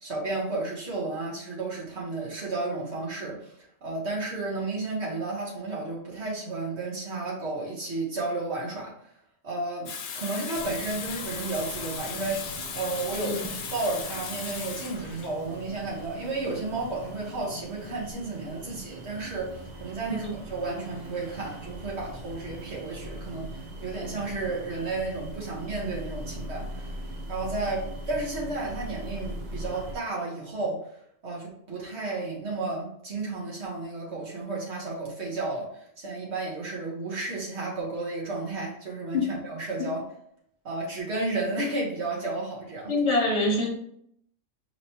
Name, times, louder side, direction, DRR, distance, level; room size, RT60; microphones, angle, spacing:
voice 1, 0.0-3.5 3.8-8.9 9.4-12.4 12.7-26.9 27.3-30.8 31.2-35.7 36.0-40.0 40.6-42.9, right 2 dB, 70° right, -4 dB, 1.7 m, -32 dB
Water tap faucet / Sink (filling or washing), 9.9-17.5, left 6 dB, 80° left, 0.9 m, -37 dB
sound 1, 10.5-30.0, right 1 dB, 45° right, 0.7 m, -41 dB
voice 2, 42.9-43.7, left 2 dB, 35° left, 0 dB, 1.0 m, -25 dB
5.1 x 3.1 x 2.9 m, 0.69 s
omnidirectional pair, 1.2 m